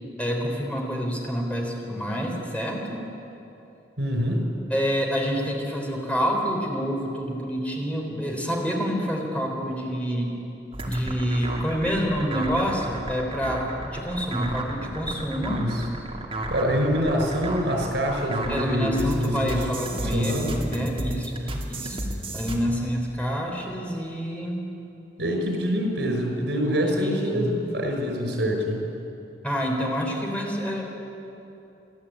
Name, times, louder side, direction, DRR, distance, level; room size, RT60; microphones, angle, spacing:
voice 1, 0.2-3.0 4.7-10.3 10.8-15.6 18.5-22.0 22.3-24.6 27.0-27.5 29.4-30.9, equal, 10° left, 0 dB, 3.8 m, -27 dB
voice 2, 4.0-4.5 15.5-15.8 16.5-19.7 20.0-20.6 25.2-28.9, equal, 85° right, 2 dB, 5.3 m, -25 dB
sound 1, 10.7-22.6, right 1 dB, 35° right, 2.5 m, -33 dB
30.0 x 12.5 x 8.6 m, 2.9 s
head